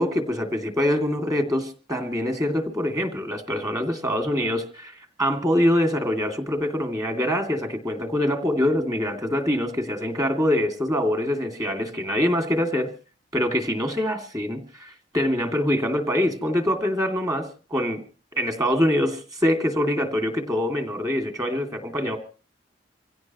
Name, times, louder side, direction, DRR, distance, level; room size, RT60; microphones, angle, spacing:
voice 1, 0.0-12.9 13.3-18.0 18.4-22.2, left 1 dB, 20° right, 5 dB, 2.5 m, -24 dB
26.0 x 16.5 x 3.1 m, 0.36 s
head